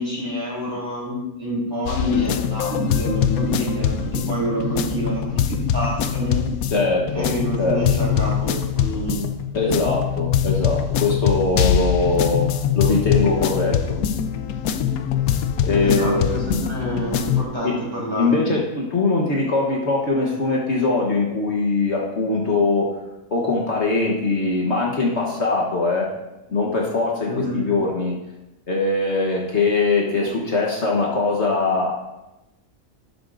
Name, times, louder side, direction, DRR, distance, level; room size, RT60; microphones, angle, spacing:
voice 1, 0.0-5.4 5.7-6.4 7.1-9.2 15.8-18.5 27.3-27.6, equal, 20° right, -6 dB, 3.6 m, -27 dB
sound 1, 1.9-17.4, left 8 dB, 85° left, 1.1 m, -23 dB
voice 2, 6.7-7.3 7.6-7.8 9.5-12.4 12.7-14.0 15.6-16.3 17.6-17.7 18.2-22.9 23.3-26.1 26.5-28.1 28.7-31.9, left 3 dB, 55° left, -2 dB, 1.3 m, -21 dB
12.0 x 7.8 x 2.5 m, 0.97 s
omnidirectional pair, 1.5 m